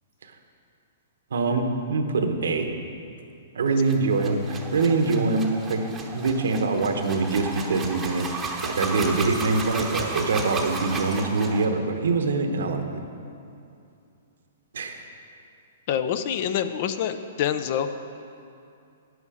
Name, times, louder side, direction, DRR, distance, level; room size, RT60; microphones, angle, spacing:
voice 1, 1.3-2.7 3.5-5.8 6.1-8.3 8.6-12.9 14.7-15.0, right 3 dB, 80° right, 5 dB, 1.0 m, -24 dB
sound 1, 3.8-11.7, right 3 dB, 10° right, 0.9 m, -34 dB
voice 2, 15.9-17.9, left 9 dB, 50° left, 10 dB, 0.5 m, -26 dB
9.7 x 8.1 x 4.9 m, 2.6 s
hypercardioid pair, 140°, 0 cm